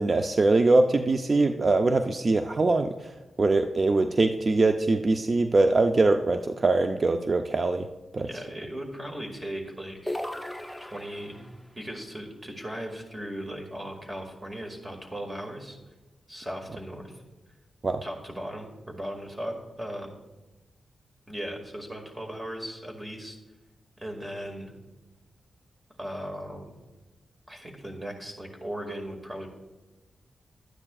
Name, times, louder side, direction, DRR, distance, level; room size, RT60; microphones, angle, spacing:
voice 1, 0.0-2.9 3.4-7.9 8.1-8.3 17.8-18.0, right 2 dB, 45° right, 7 dB, 0.5 m, -22 dB
voice 2, 8.2-10.2 10.8-15.8 16.3-17.1 18.0-20.2 21.3-23.4 24.0-24.8 26.0-26.6 27.5-29.5, equal, 20° right, 2 dB, 2.0 m, -37 dB
sound 1, 10.1-11.6, left 1 dB, 10° left, 0.5 m, -36 dB
12.0 x 9.8 x 2.4 m, 1.1 s
cardioid pair, 70°, 0 cm